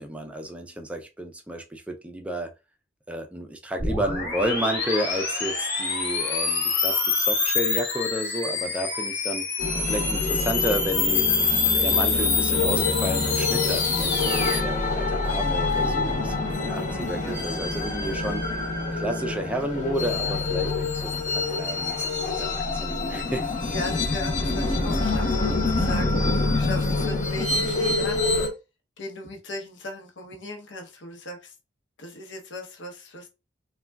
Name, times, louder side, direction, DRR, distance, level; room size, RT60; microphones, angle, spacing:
voice 1, 0.0-2.5 3.1-9.4 9.9-11.3 11.7-18.4 18.9-22.0 22.4-23.7, right 1 dB, 5° right, 0.3 m, -31 dB
sound 1, 3.8-14.6, left 5 dB, 55° left, 1.1 m, -26 dB
sound 2, 4.9-5.6 5.9-6.7 6.9-7.7 7.9-8.7 8.9-9.7 9.9-10.7 10.9-11.7 11.9-12.7 12.9-13.7 13.9-14.7, equal, 80° right, 0.4 m, -42 dB
sound 3, 9.6-28.5, left 3 dB, 40° left, 0.6 m, -26 dB
voice 2, 23.7-28.2 29.0-31.5 32.0-33.3, left 2 dB, 70° left, 0.7 m, -37 dB
3.5 x 2.2 x 2.2 m
head